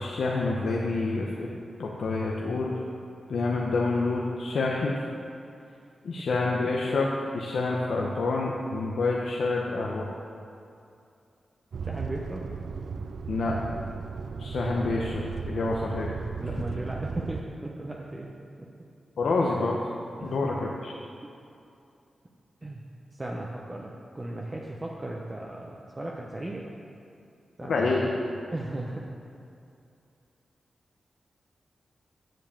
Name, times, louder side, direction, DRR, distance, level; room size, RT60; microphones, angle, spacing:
voice 1, 0.0-1.5 1.8-2.8 3.3-5.0 6.0-10.1 13.3-13.6 14.4-16.1 19.2-19.8 20.2-20.5 20.8-20.9 27.7-28.0, left 3 dB, 80° left, -2 dB, 0.9 m, -27 dB
sound 1, 11.7-17.4, right 5 dB, 70° right, 0.4 m, -35 dB
voice 2, 11.8-12.5 16.4-18.3 18.6-18.7 20.2-20.5 22.6-22.8 23.1-26.7 27.6-27.7 28.5-29.1, right 1 dB, 25° right, -2 dB, 0.9 m, -36 dB
7.8 x 7.3 x 7.0 m, 2.5 s
wide cardioid pair, 85°, 0 cm